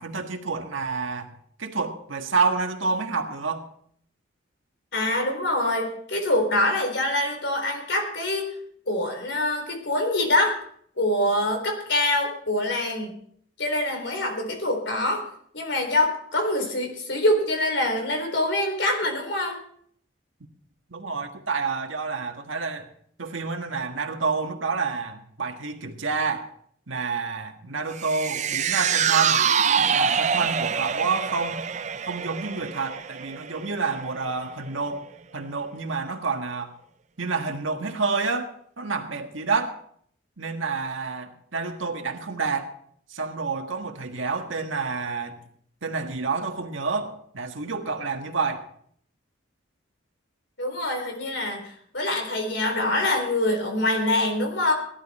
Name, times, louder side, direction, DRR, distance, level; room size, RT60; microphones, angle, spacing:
voice 1, 0.0-3.7 20.9-22.9 23.2-26.5 26.9-29.4 29.8-31.6 32.0-35.1 35.3-36.7 37.2-39.8 40.4-42.7 43.1-45.4 45.8-48.7, right 4 dB, 80° right, 1.7 m, -28 dB
voice 2, 4.9-8.5 8.9-10.6 11.0-13.1 13.6-15.3 15.5-19.6 50.6-54.7, left 1 dB, 65° left, 4.0 m, -25 dB
sound 1, 28.0-34.4 34.8-34.9, right 7 dB, 35° right, 0.5 m, -25 dB
17.5 x 12.0 x 4.3 m
head